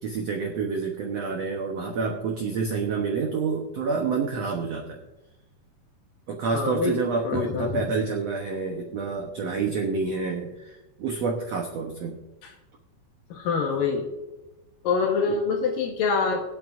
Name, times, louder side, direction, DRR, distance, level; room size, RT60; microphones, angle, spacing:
voice 1, 0.0-5.0 6.3-12.2 15.3-15.4, right 4 dB, 80° right, 1 dB, 1.5 m, -28 dB
voice 2, 6.5-7.9 12.4-12.5 13.3-14.1 14.8-16.4, left 5 dB, 65° left, 2 dB, 2.7 m, -25 dB
24.0 x 8.5 x 2.6 m, 1.0 s
omnidirectional pair, 4.6 m